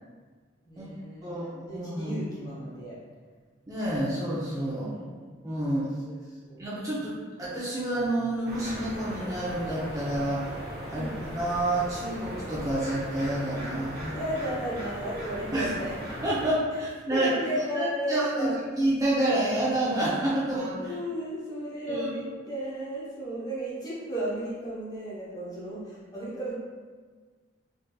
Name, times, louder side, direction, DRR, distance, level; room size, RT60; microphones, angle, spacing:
voice 1, 0.6-3.0 4.8-5.3 6.0-7.1 10.8-11.2 14.1-15.9 17.1-18.6 20.8-26.5, right 1 dB, 20° left, -8 dB, 0.7 m, -34 dB
voice 2, 1.2-2.2 3.7-4.9 5.4-5.9 6.6-10.5 10.9-14.2 15.5-15.7 16.2-17.3 17.7-20.9 21.9-22.1, right 1 dB, 20° right, -9 dB, 0.5 m, -29 dB
sound 1, 8.4-16.5, equal, 55° right, 0.8 m, -38 dB
3.7 x 2.6 x 2.2 m, 1.5 s
head